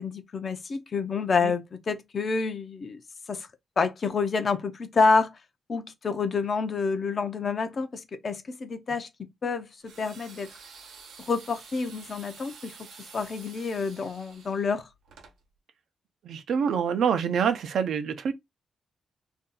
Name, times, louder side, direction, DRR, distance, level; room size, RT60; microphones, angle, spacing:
voice 1, 0.0-3.0 3.3-3.5 3.8-5.4 5.7-9.1 9.4-10.5 11.2-12.8 13.1-14.9, left 4 dB, 35° left, 0.5 m, -28 dB
sound 1, 9.8-15.4, right 5 dB, 85° right, 0.9 m, -49 dB
voice 2, 16.2-18.3, right 7 dB, 65° right, 0.6 m, -26 dB
2.6 x 2.4 x 3.7 m
wide cardioid pair, 155°, 0 cm